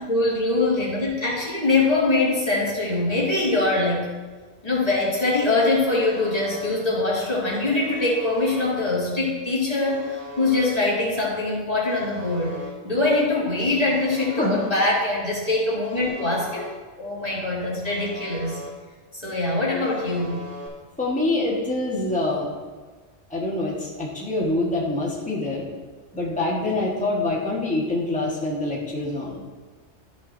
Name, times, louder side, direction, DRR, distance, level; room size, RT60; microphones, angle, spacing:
voice 1, 0.1-4.1 4.6-16.7 17.0-18.6 19.1-20.4, left 2 dB, 30° left, -7 dB, 2.9 m, -23 dB
Alarm, 5.8-6.7 7.8-8.7 9.8-10.7 11.8-12.7 13.8-14.7 15.8-16.7 17.8-18.7 19.8-20.7, left 1 dB, 15° right, 2.0 m, -39 dB
voice 2, 21.0-22.5 23.3-25.7 26.1-29.3, left 2 dB, 5° left, -4 dB, 1.6 m, -25 dB
14.0 x 6.3 x 2.8 m, 1.4 s
omnidirectional pair, 1.2 m